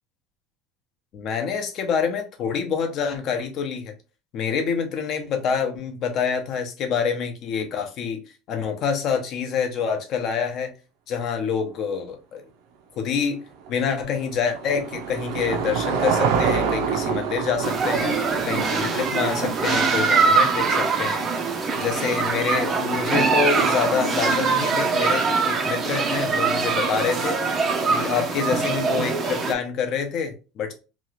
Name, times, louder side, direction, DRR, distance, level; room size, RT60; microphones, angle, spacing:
voice 1, 1.1-3.9 4.3-8.2 8.5-10.7 11.1-12.5 13.0-13.4 13.7-21.2 21.8-27.6 27.9-30.7, left 6 dB, 40° left, 0.7 m, -27 dB
Car passing by / Engine, 13.6-20.1, right 6 dB, 65° right, 0.6 m, -27 dB
Viktigt meddelande - bra kvalité, 17.6-29.5, right 4 dB, 25° right, 0.5 m, -23 dB
2.9 x 2.4 x 3.1 m
cardioid pair, 165°, 0 cm